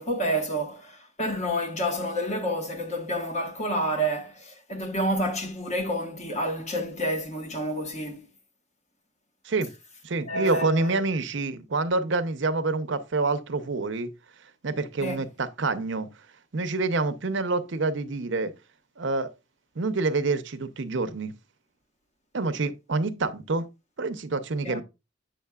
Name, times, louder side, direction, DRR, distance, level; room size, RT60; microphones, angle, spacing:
voice 1, 0.0-8.3 10.3-11.0 15.0-15.2 24.6-24.8, equal, 35° left, 1.3 m, -29 dB
voice 2, 10.0-14.1 14.6-16.1 16.5-18.5 19.0-19.3 19.8-21.3 22.3-23.7 24.0-24.8, right 3 dB, 60° right, 0.6 m, -27 dB
7.7 x 6.5 x 2.3 m
head